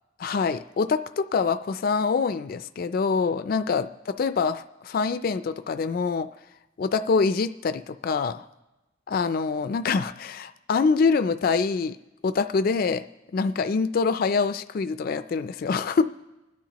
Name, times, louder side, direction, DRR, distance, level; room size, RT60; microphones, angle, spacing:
voice 1, 0.2-6.3 6.8-8.4 9.1-12.0 12.2-13.0 13.3-16.0, left 5 dB, 50° left, 11 dB, 0.3 m, -25 dB
29.0 x 10.0 x 3.0 m, 1.0 s
head